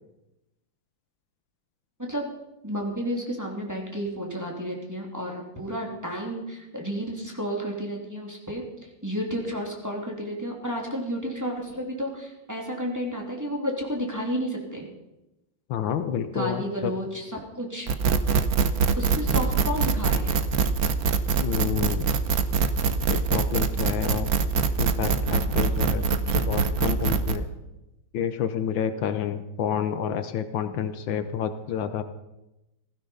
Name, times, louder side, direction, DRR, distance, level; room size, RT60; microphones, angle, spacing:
voice 1, 2.6-14.9 16.3-17.9 19.0-20.4, equal, 10° right, -1 dB, 2.9 m, -31 dB
voice 2, 15.7-16.9 21.4-22.1 23.1-24.3 24.8-27.5 28.1-32.0, left 8 dB, 75° left, 10 dB, 1.6 m, -29 dB
sound 1, 17.9-27.4, right 5 dB, 55° right, 1.2 m, -23 dB
16.0 x 15.5 x 5.6 m, 0.96 s
omnidirectional pair, 2.2 m